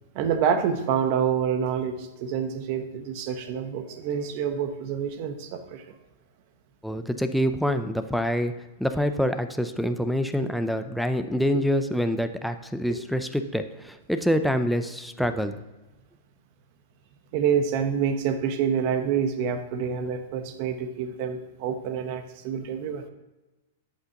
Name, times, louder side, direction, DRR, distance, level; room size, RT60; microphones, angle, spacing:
voice 1, 0.1-5.8 12.9-13.0 17.3-23.0, right 7 dB, 40° right, 8 dB, 1.0 m, -27 dB
voice 2, 6.8-8.5 8.8-15.6, equal, ahead, 8 dB, 0.5 m, -26 dB
11.5 x 8.2 x 2.9 m, 1.1 s
supercardioid pair, 160°, 0 cm